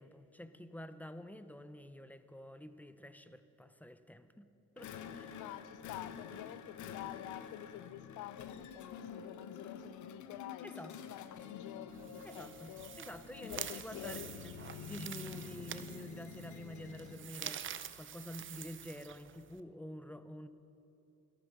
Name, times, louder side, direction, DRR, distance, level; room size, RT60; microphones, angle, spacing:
voice 1, 0.0-4.5 4.8-5.4 10.6-10.9 12.2-20.5, equal, 5° left, 0.6 m, -49 dB
sound 1, 4.8-17.3, left 7 dB, 75° left, 0.9 m, -48 dB
voice 2, 5.4-12.9 13.4-14.3, left 14 dB, 90° left, 0.5 m, -48 dB
sound 2, 11.9-19.6, right 9 dB, 40° right, 0.6 m, -47 dB
13.0 x 12.0 x 6.1 m
cardioid pair, 90°, 30 cm